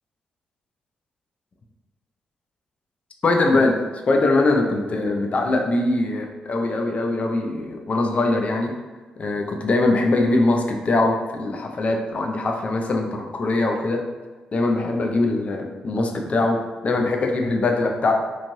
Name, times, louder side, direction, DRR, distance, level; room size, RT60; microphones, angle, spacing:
voice 1, 3.2-3.8 4.1-8.7 9.2-14.0 14.5-18.1, left 2 dB, 45° left, 3 dB, 0.4 m, -22 dB
3.1 x 2.5 x 2.6 m, 1.3 s
hypercardioid pair, 40°, 3 cm